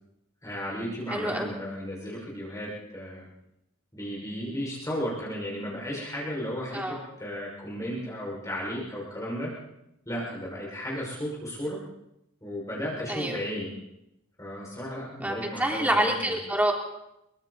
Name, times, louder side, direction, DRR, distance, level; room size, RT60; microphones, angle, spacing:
voice 1, 0.4-3.3 3.9-9.5 10.1-11.8 12.4-13.7 14.4-16.4, equal, 15° left, -5 dB, 6.0 m, -34 dB
voice 2, 1.1-1.5 6.7-7.0 13.1-13.4 15.2-16.7, right 1 dB, 5° right, 0 dB, 3.4 m, -27 dB
27.5 x 23.5 x 4.2 m, 0.84 s
head